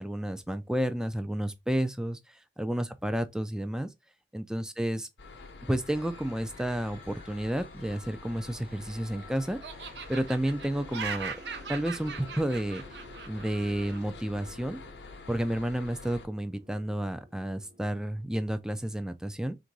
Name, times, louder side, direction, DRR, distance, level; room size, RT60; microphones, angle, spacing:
voice 1, 0.0-3.9 4.3-5.1 5.7-11.4 11.7-12.8 13.3-14.8 15.3-19.6, right 1 dB, 5° right, 0.3 m, -31 dB
sound 1, 5.2-16.3, left 3 dB, 85° left, 0.7 m, -47 dB
sound 2, 5.9-18.2, right 1 dB, 30° right, 0.8 m, -55 dB
Laughter, 8.4-9.2 9.6-14.0, right 6 dB, 75° right, 0.7 m, -40 dB
3.6 x 2.6 x 4.6 m
head